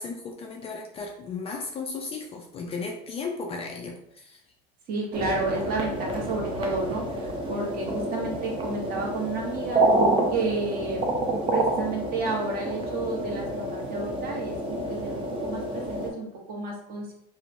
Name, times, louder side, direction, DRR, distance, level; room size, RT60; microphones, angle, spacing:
voice 1, 0.0-4.4, left 4 dB, 30° left, 1 dB, 0.3 m, -35 dB
voice 2, 4.9-9.8 10.3-11.0 11.5-15.6 15.9-17.1, right 3 dB, 45° right, -1 dB, 0.9 m, -31 dB
sound 1, 5.1-16.1, right 1 dB, 25° right, 0.5 m, -28 dB
3.0 x 2.0 x 2.5 m, 0.73 s
supercardioid pair, 120°, 21 cm